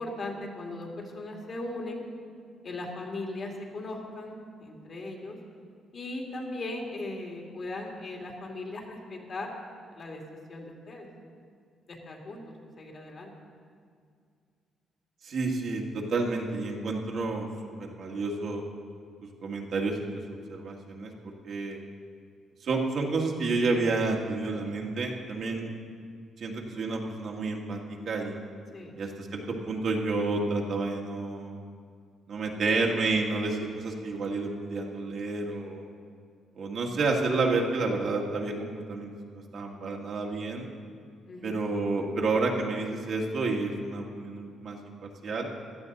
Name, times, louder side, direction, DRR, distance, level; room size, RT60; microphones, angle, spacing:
voice 1, 0.0-2.1 2.6-5.4 5.9-9.5 9.9-10.2 10.5-11.1 11.9-12.4 12.8-13.3 28.7-28.9 41.2-41.6, left 2 dB, 50° left, 0 dB, 2.5 m, -38 dB
voice 2, 15.2-17.5 17.8-18.6 19.4-21.8 22.6-25.7 26.4-27.8 28.1-28.4 29.0-31.6 32.3-35.9 36.6-40.7 41.4-45.5, right 3 dB, 60° right, 0 dB, 1.8 m, -30 dB
16.5 x 11.5 x 4.1 m, 2.2 s
cardioid pair, 90°, 0 cm